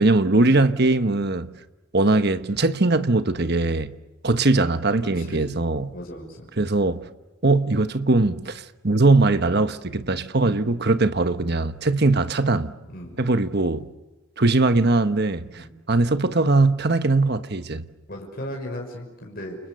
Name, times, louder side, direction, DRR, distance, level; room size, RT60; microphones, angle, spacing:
voice 1, 0.0-1.5 1.9-3.9 4.2-5.9 6.6-7.0 7.4-12.7 13.2-13.9 14.4-17.8, right 2 dB, 50° right, 1.2 m, -21 dB
voice 2, 5.1-5.6 5.9-6.5 10.4-10.7 12.9-13.2 15.5-15.7 18.1-19.6, equal, 45° left, 6.0 m, -36 dB
30.0 x 29.0 x 6.8 m
head